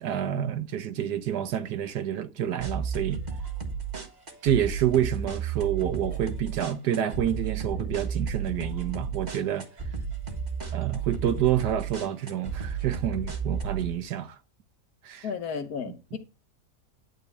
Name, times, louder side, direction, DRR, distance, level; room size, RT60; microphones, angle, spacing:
voice 1, 0.0-3.2 4.4-9.6 10.7-14.4 15.0-15.3 15.9-16.2, right 10 dB, 80° right, 1.6 m, -28 dB
sound 1, 2.6-13.9, right 6 dB, 25° right, 1.6 m, -33 dB
voice 2, 15.2-16.2, left 6 dB, 70° left, 1.6 m, -33 dB
11.5 x 4.5 x 7.2 m
omnidirectional pair, 1.7 m